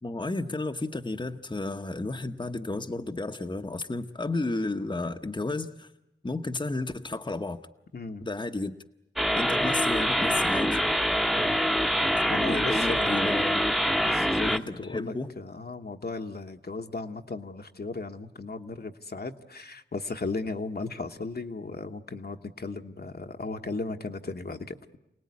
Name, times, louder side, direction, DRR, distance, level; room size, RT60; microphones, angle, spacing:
voice 1, 0.0-5.9 6.2-7.6 8.2-8.7 9.3-10.8 12.4-13.8 14.5-15.3, left 2 dB, 25° left, 6 dB, 1.0 m, -32 dB
sound 1, 9.2-14.6, equal, ahead, 1.1 m, -25 dB
voice 2, 12.3-13.4 14.0-25.0, left 3 dB, 55° left, 5 dB, 1.3 m, -36 dB
28.0 x 18.5 x 9.6 m, 0.89 s
wide cardioid pair, 60°, 19 cm